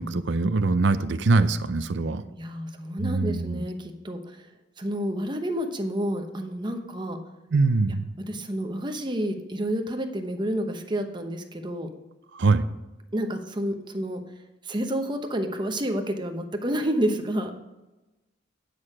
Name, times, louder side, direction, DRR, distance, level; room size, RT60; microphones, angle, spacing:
voice 1, 0.0-2.2 3.0-3.6 7.5-8.1 12.3-12.6, right 3 dB, 65° right, 12 dB, 0.5 m, -23 dB
voice 2, 2.2-4.4 4.8-7.2 8.3-11.9 13.1-14.2 14.6-17.5, equal, 25° right, 5 dB, 0.9 m, -29 dB
9.5 x 6.5 x 4.8 m, 1.1 s
head